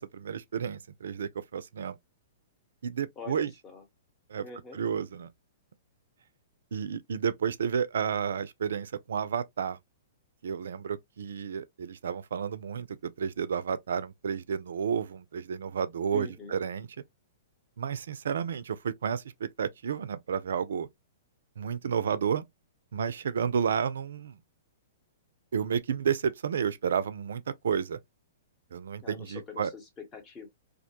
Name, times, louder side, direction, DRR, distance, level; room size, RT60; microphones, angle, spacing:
voice 1, 0.0-2.0 2.8-3.5 4.3-4.5 4.7-5.3 6.7-9.8 10.4-16.9 17.8-20.9 21.6-22.4 22.9-24.4 25.5-28.0 28.7-29.7, right 7 dB, 75° right, 0.3 m, -31 dB
voice 2, 3.2-3.8 4.4-4.8 16.1-16.6 29.0-30.5, left 4 dB, 20° left, 0.9 m, -44 dB
2.3 x 2.1 x 2.8 m
hypercardioid pair, 120°, 0 cm